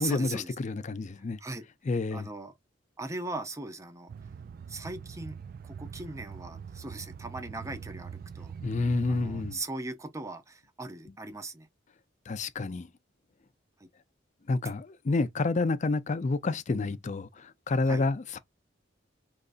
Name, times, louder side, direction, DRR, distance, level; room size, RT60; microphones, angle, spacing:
voice 1, 0.0-0.5 1.4-1.7 2.1-2.5 3.0-4.1 4.7-8.6 9.1-11.7 13.8-13.9 17.8-18.1, right 2 dB, 15° right, 0.6 m, -39 dB
voice 2, 0.6-1.4 1.9-2.3 8.6-9.6 12.3-12.9 14.5-18.4, left 3 dB, 40° left, 0.4 m, -29 dB
sound 1, 4.1-9.6, right 6 dB, 50° right, 0.3 m, -43 dB
3.8 x 3.1 x 2.5 m
head